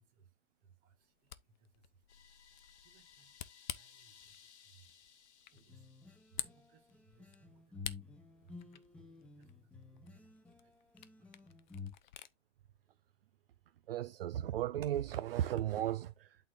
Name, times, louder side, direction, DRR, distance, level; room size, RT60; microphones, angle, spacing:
voice 1, 0.0-12.2, right 6 dB, 25° right, 1.6 m, -68 dB
Camera, 1.0-12.4, left 11 dB, 40° left, 0.5 m, -51 dB
sound 1, 2.1-6.9, left 7 dB, 65° left, 1.3 m, -62 dB
sound 2, 5.5-11.9, left 5 dB, 5° left, 0.8 m, -52 dB
voice 2, 13.9-16.5, right 12 dB, 55° right, 0.5 m, -35 dB
11.5 x 4.1 x 2.6 m
hypercardioid pair, 140°, 36 cm